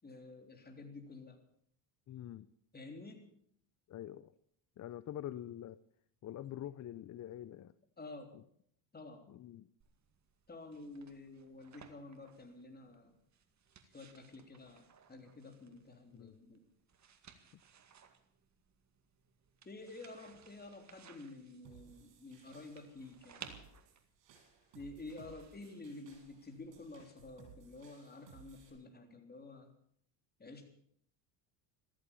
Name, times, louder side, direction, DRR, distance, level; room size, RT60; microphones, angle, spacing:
voice 1, 0.0-1.4 2.7-3.3 8.0-8.4 8.9-9.3 10.5-13.1 13.8-16.7 19.6-23.7 24.7-29.7 30.4-30.6, left 2 dB, 20° left, 5 dB, 3.5 m, -50 dB
voice 2, 2.1-2.5 3.9-4.3 4.8-5.8 6.2-7.7 8.3-8.4 9.3-9.7 16.1-16.4 17.5-17.6, left 12 dB, 40° left, 16 dB, 0.7 m, -45 dB
sound 1, 9.8-27.0, right 7 dB, 35° right, 2.1 m, -60 dB
sound 2, 21.6-28.7, right 7 dB, 70° right, 7.5 m, -61 dB
14.5 x 14.0 x 7.1 m, 0.66 s
supercardioid pair, 100°, 45 cm